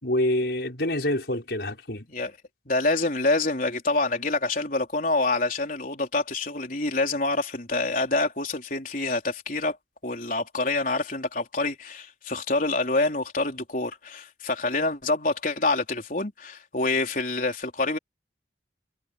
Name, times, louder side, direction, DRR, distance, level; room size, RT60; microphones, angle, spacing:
voice 1, 0.0-2.0, left 1 dB, 65° left, 6.2 m, -26 dB
voice 2, 2.7-9.8 10.0-18.0, left 2 dB, 50° left, 4.2 m, -26 dB
head